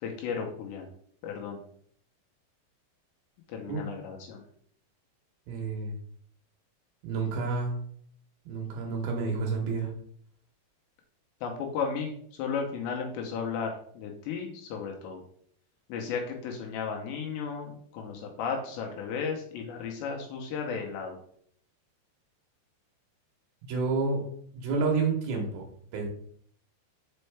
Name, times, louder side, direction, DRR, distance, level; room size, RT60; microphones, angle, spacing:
voice 1, 0.0-0.9 1.2-1.6 3.5-4.4 11.4-15.2 15.9-21.2, left 6 dB, 80° left, 2 dB, 2.8 m, -34 dB
voice 2, 5.5-5.9 7.0-7.8 8.5-9.9 23.7-24.3 24.5-25.6 25.9-26.1, right 4 dB, 75° right, 0 dB, 2.3 m, -29 dB
5.4 x 5.4 x 3.3 m, 0.62 s
omnidirectional pair, 5.4 m